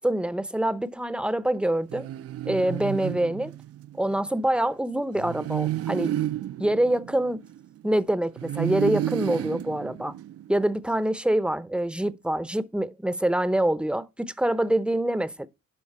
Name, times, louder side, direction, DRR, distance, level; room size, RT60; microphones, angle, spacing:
voice 1, 0.0-2.1 2.4-3.5 4.0-6.2 6.6-7.4 7.8-10.1 10.5-15.5, right 1 dB, 5° right, 0.6 m, -25 dB
sound 1, 1.9-4.0 5.1-7.9 8.4-10.6, right 13 dB, 55° right, 0.4 m, -31 dB
11.0 x 3.8 x 5.4 m
cardioid pair, 90°, 30 cm